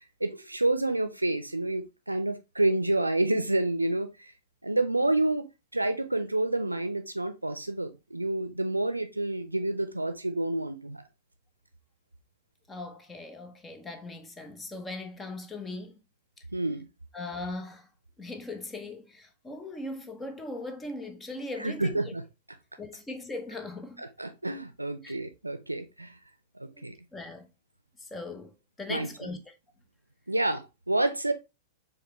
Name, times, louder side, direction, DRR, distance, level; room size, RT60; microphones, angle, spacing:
voice 1, 0.2-4.3 4.6-5.5 5.7-11.0 16.5-16.9 21.6-22.2 24.0-26.1 26.6-26.9 28.9-29.1 30.3-31.3, right 2 dB, 85° right, 0.6 m, -29 dB
voice 2, 12.7-16.0 17.1-17.9 18.2-22.1 22.8-24.0 25.0-25.2 26.7-26.8 27.1-27.5 28.0-29.5, left 2 dB, 15° left, 0.7 m, -39 dB
4.8 x 3.3 x 3.0 m
figure-of-eight pair, 95°, 0 cm